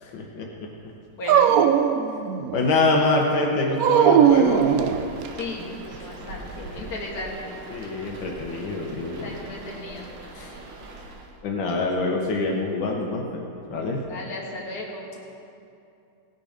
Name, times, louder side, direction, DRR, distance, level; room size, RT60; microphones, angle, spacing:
voice 1, 0.0-0.7 2.5-4.7 6.6-6.9 7.7-9.3 10.3-10.5 11.4-14.0, left 2 dB, 85° left, 0 dB, 1.7 m, -25 dB
voice 2, 1.2-1.5 5.4-6.5 6.7-7.6 9.2-10.1 14.0-15.2, left 2 dB, 55° left, -2 dB, 2.1 m, -35 dB
Dog, 1.3-2.7 3.8-5.4, right 8 dB, 70° right, 0.8 m, -18 dB
sound 1, 4.3-11.4, right 2 dB, 85° right, 1.9 m, -42 dB
17.5 x 6.7 x 5.0 m, 2.6 s
omnidirectional pair, 2.0 m